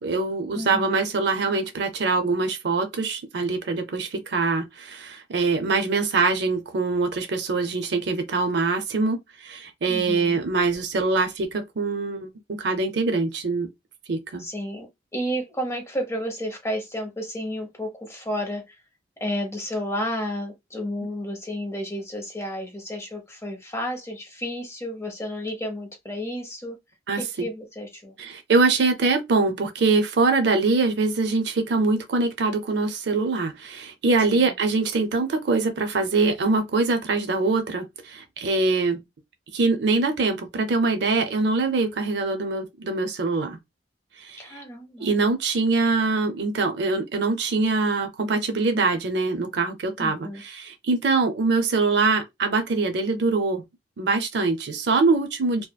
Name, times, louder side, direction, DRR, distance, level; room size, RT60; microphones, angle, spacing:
voice 1, 0.0-13.7 14.1-14.5 27.1-27.5 28.2-39.0 39.5-43.6 44.2-44.4 45.0-53.7 54.0-55.7, right 3 dB, 65° right, 0.5 m, -23 dB
voice 2, 0.5-1.0 9.9-10.4 14.4-14.9 15.1-18.6 19.2-26.8 27.2-28.1 34.3-34.5 44.4-45.1 50.0-50.4, equal, 15° left, 0.8 m, -31 dB
2.8 x 2.4 x 2.2 m
head